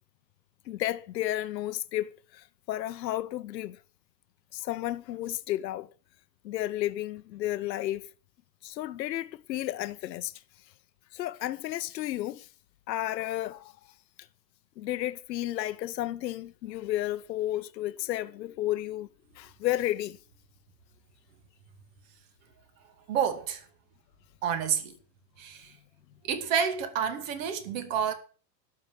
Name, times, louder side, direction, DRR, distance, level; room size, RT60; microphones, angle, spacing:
voice 1, 0.7-3.8 4.5-5.9 6.4-8.1 8.6-10.4 11.1-12.5 12.9-13.7 14.8-19.1 19.3-20.2, left 14 dB, 90° left, 1.0 m, -32 dB
voice 2, 23.1-23.6 24.4-25.0 25.4-25.7 26.3-28.1, right 7 dB, 50° right, 2.4 m, -29 dB
12.5 x 6.0 x 9.1 m
supercardioid pair, 160°, 49 cm